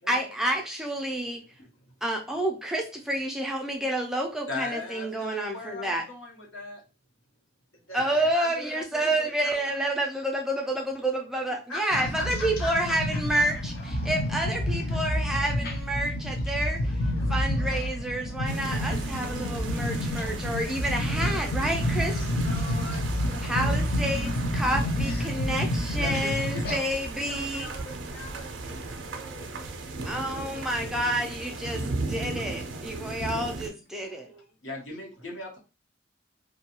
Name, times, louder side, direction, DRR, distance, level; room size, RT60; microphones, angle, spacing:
voice 1, 0.1-1.4 2.0-6.1 7.9-13.7 14.0-16.9 17.3-22.4 23.4-27.7 30.0-31.8 32.1-34.3, right 1 dB, ahead, 0 dB, 0.3 m, -29 dB
voice 2, 1.4-1.9 7.7-10.0 11.7-13.4 16.8-17.3 21.0-21.7 22.0-23.8 26.9-31.1 31.5-32.2 34.0-34.6 35.2-35.4, left 1 dB, 90° left, -2 dB, 1.2 m, -43 dB
voice 3, 4.5-6.8 13.4-13.6 26.0-26.3 26.6-26.7 34.6-35.6, left 3 dB, 65° left, -3 dB, 1.0 m, -38 dB
sound 1, 11.9-26.8, left 1 dB, 50° left, 0.5 m, -29 dB
sound 2, 18.5-33.7, right 3 dB, 65° right, 0.5 m, -36 dB
2.6 x 2.3 x 2.9 m, 0.31 s
head